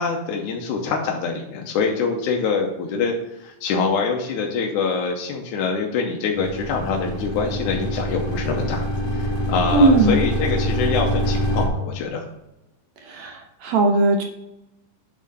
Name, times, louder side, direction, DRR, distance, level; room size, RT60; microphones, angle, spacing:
voice 1, 0.0-8.9 9.1-12.2, left 5 dB, 80° left, 0 dB, 2.2 m, -25 dB
sound 1, 6.4-11.7, equal, 30° left, 1.1 m, -25 dB
voice 2, 9.7-10.2 13.0-14.2, right 2 dB, 75° right, 3 dB, 1.8 m, -18 dB
8.6 x 3.7 x 5.4 m, 0.93 s
omnidirectional pair, 3.6 m